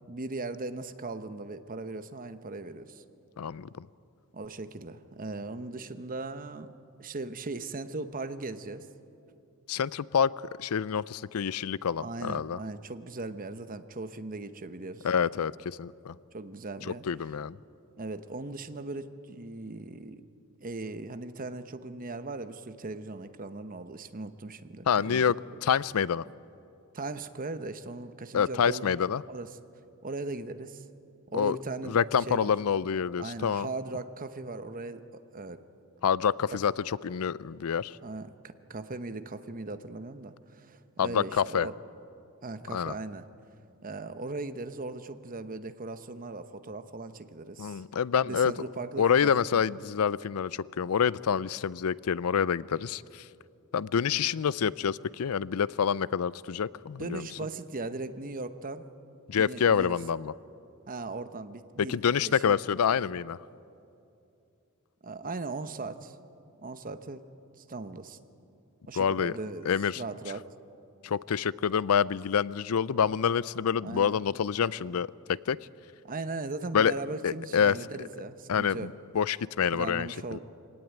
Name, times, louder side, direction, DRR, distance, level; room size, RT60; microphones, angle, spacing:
voice 1, 0.1-3.0 4.3-6.7 7.0-8.9 12.0-15.1 16.3-17.0 18.0-20.2 20.6-25.3 26.9-29.0 29.3-29.5 30.0-30.8 31.3-32.0 32.3-32.5 33.2-35.6 36.5-36.6 38.0-41.7 42.4-43.3 43.8-47.8 48.3-49.6 57.0-58.8 59.3-60.0 60.9-62.0 62.2-62.6 62.9-63.0 65.0-66.2 66.6-67.2 67.6-68.2 68.9-69.7 70.0-70.5 73.8-74.2 76.0-78.9 79.7-80.4, right 3 dB, 40° right, 10 dB, 0.9 m, -38 dB
voice 2, 3.4-3.9 9.7-10.3 10.6-12.6 15.0-16.2 17.0-17.6 24.9-25.4 25.6-26.2 28.3-29.2 31.3-31.6 31.8-33.7 36.0-38.0 41.0-41.7 42.7-42.9 47.6-48.5 49.0-53.3 53.7-57.3 59.3-60.3 61.8-63.4 69.0-69.4 69.7-70.0 71.0-75.6 76.7-76.9 77.2-78.1 78.5-80.4, left 7 dB, 85° left, 20 dB, 0.5 m, -27 dB
24.5 x 18.0 x 9.2 m, 2.6 s
head